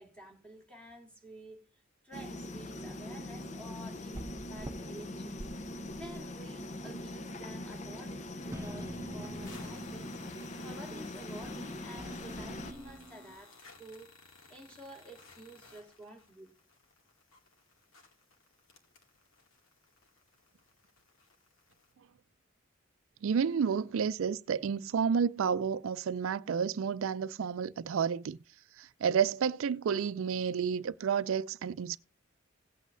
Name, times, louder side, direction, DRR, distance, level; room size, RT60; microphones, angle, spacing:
voice 1, 0.0-1.7 2.0-5.4 5.9-10.1 10.6-14.1 14.5-16.5, right 1 dB, 5° left, 2.0 m, -50 dB
sound 1, 2.1-12.7, left 1 dB, 35° left, 0.7 m, -42 dB
sound 2, 4.1-4.7 5.3-6.3 6.6-6.7 8.5-10.7 11.4-13.3, right 1 dB, 15° right, 0.7 m, -46 dB
sound 3, 4.7-4.8 5.0-5.1 5.6-6.0 6.4-6.5 6.9-7.5 7.8-7.9 8.2-8.3 8.5-8.7 9.2-21.9, left 4 dB, 90° left, 2.2 m, -58 dB
voice 2, 23.2-28.4 28.8-32.0, right 7 dB, 80° right, 0.4 m, -30 dB
17.0 x 8.2 x 2.6 m
head